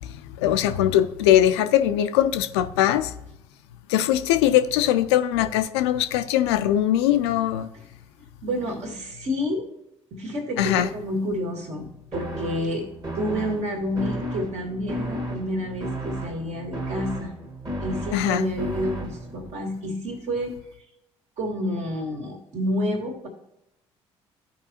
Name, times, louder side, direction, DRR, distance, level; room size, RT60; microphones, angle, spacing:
voice 1, 0.4-3.1 3.9-7.7 10.6-10.9 18.1-18.4, left 12 dB, 70° left, 9 dB, 0.5 m, -21 dB
voice 2, 8.4-9.7 10.1-12.9 13.1-17.3 17.8-20.5 21.4-23.3, equal, 50° right, 2 dB, 1.9 m, -29 dB
sound 1, 12.1-19.5, equal, 30° right, 1.7 m, -33 dB
14.5 x 4.8 x 2.8 m, 0.85 s
figure-of-eight pair, 50°, 15 cm